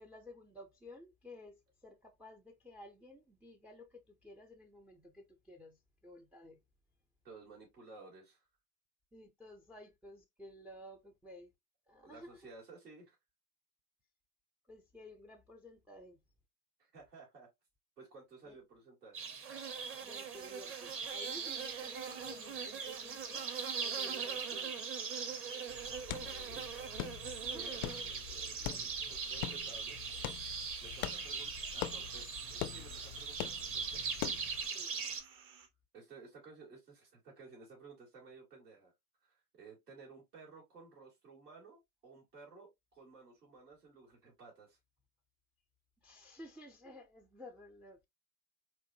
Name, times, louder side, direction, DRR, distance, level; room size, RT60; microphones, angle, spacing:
voice 1, 0.0-6.6 9.1-11.5 11.9-12.5 14.7-16.2 18.5-18.6 20.0-23.6 23.8-24.7 27.4-27.7 34.7-34.9 46.0-48.0, left 1 dB, 5° right, 0.3 m, -54 dB
voice 2, 7.2-8.4 12.0-13.2 16.8-17.5 18.0-19.2 26.0-26.6 27.5-30.0 30.8-34.0 35.3-35.6 35.9-38.9 39.2-44.8, right 4 dB, 80° right, 2.4 m, -56 dB
sound 1, 19.1-35.2, right 5 dB, 30° right, 0.8 m, -40 dB
sound 2, 20.3-35.7, right 7 dB, 50° right, 1.0 m, -59 dB
sound 3, 25.7-34.7, left 13 dB, 60° left, 0.5 m, -44 dB
4.6 x 2.5 x 2.6 m
figure-of-eight pair, 70°, 46 cm